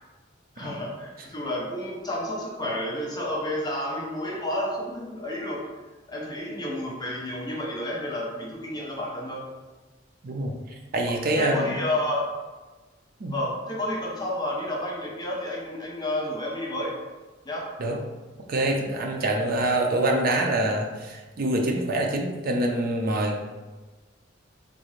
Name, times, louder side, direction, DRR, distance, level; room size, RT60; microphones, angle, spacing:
voice 1, 0.6-5.6 6.1-9.4 11.1-12.3 13.3-16.9 17.4-17.7 19.2-19.3, left 1 dB, 20° left, -3 dB, 0.5 m, -30 dB
voice 2, 10.9-11.8 13.2-13.3 17.8-18.0 18.5-23.4, right 1 dB, 50° right, 1 dB, 0.5 m, -25 dB
3.6 x 2.4 x 3.1 m, 1.3 s
head